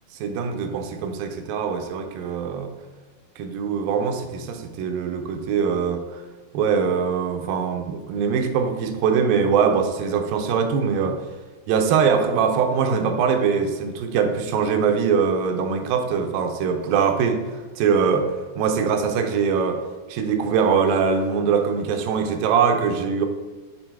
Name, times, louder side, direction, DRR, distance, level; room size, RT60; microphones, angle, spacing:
voice 1, 0.2-2.7 3.4-6.2 6.5-11.2 11.7-17.4 17.8-19.8 20.1-23.3, right 6 dB, 90° right, 5 dB, 2.5 m, -22 dB
7.1 x 4.0 x 4.5 m, 1.3 s
omnidirectional pair, 4.0 m